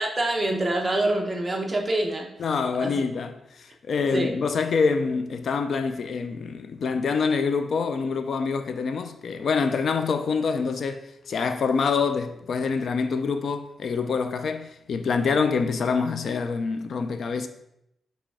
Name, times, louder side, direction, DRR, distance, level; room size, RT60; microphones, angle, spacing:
voice 1, 0.0-2.3 2.8-2.9 4.1-4.4, right 1 dB, 25° right, 0.9 m, -25 dB
voice 2, 2.4-17.5, left 5 dB, 60° left, 0.5 m, -26 dB
6.0 x 3.4 x 4.8 m
wide cardioid pair, 140°, 0 cm